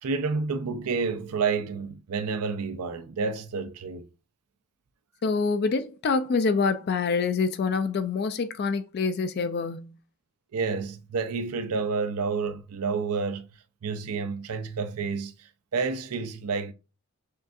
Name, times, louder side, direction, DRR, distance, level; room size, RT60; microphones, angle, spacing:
voice 1, 0.0-4.1 10.5-13.5 13.8-16.7, right 4 dB, 85° right, 0.5 m, -29 dB
voice 2, 5.2-9.9, left 4 dB, 45° left, 0.3 m, -26 dB
6.4 x 2.4 x 2.6 m
head